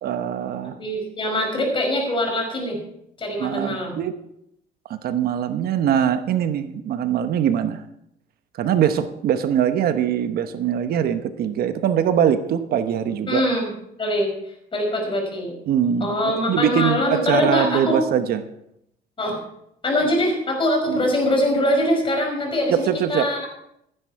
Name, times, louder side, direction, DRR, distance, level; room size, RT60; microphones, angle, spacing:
voice 1, 0.0-0.8 3.4-4.1 4.9-7.8 8.5-13.4 15.7-18.4 20.9-21.0 22.7-23.3, right 9 dB, 65° right, 10 dB, 1.0 m, -22 dB
voice 2, 0.8-2.8 3.2-4.0 13.3-13.7 14.0-14.3 14.7-15.6 16.0-18.0 19.2-19.4 19.8-23.5, left 1 dB, 30° left, 2 dB, 5.5 m, -23 dB
15.5 x 10.0 x 4.7 m, 0.77 s
cardioid pair, 110°, 17 cm